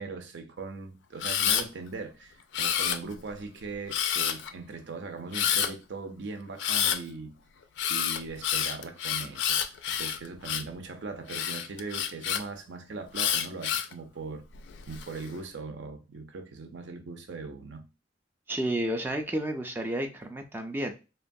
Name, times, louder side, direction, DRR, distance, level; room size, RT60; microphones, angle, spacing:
voice 1, 0.0-7.3 7.9-14.4 14.9-17.9, right 4 dB, 70° right, 0.5 m, -40 dB
Camera, 1.2-1.6 2.5-3.3 3.9-4.5 5.3-5.7 6.6-7.0 7.8-10.7 11.3-12.4 13.1-13.9 14.5-15.1, left 9 dB, 70° left, 0.3 m, -28 dB
voice 2, 18.5-21.0, right 1 dB, 10° right, 0.3 m, -31 dB
2.9 x 2.2 x 2.6 m
head